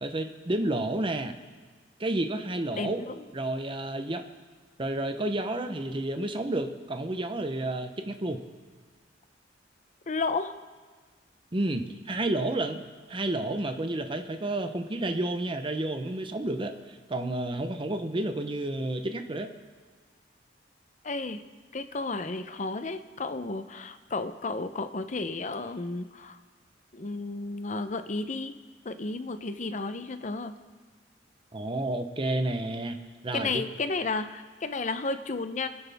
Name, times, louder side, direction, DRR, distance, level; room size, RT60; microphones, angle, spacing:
voice 1, 0.0-1.3 2.0-3.0 3.3-4.2 4.8-8.4 11.5-12.8 13.1-16.8 17.1-19.5 31.5-33.0 33.2-33.6, right 1 dB, 30° right, 7 dB, 0.8 m, -30 dB
voice 2, 2.8-3.2 10.1-10.5 21.0-21.4 21.7-26.4 26.9-28.5 28.8-30.5 33.3-35.7, left 3 dB, 45° left, 10 dB, 0.7 m, -32 dB
25.0 x 9.8 x 3.5 m, 1.5 s
head